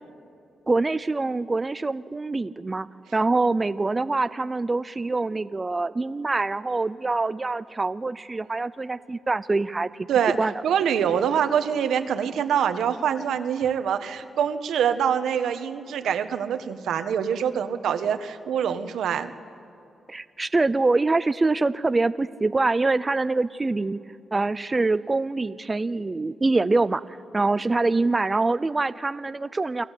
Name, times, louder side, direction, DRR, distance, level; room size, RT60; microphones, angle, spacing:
voice 1, 0.7-2.9 3.1-10.1 10.4-10.5 20.1-24.0 24.3-27.0 27.3-29.8, right 3 dB, 25° right, 13 dB, 0.5 m, -24 dB
voice 2, 10.6-19.3, right 8 dB, 85° right, 9 dB, 1.4 m, -25 dB
29.0 x 21.5 x 8.4 m, 2.7 s
cardioid pair, 110°, 0 cm